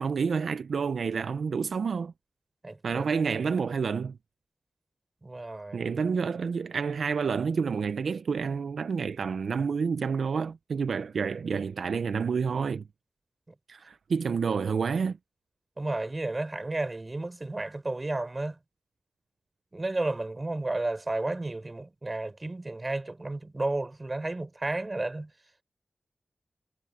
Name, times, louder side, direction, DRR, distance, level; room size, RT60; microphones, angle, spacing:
voice 1, 0.0-2.1 2.8-4.2 5.7-12.8 13.7-15.2, right 5 dB, 85° right, 0.6 m, -29 dB
voice 2, 2.6-3.0 5.2-5.8 15.8-18.6 19.7-25.3, right 2 dB, 35° right, 4.6 m, -32 dB
cardioid pair, 45°, 0 cm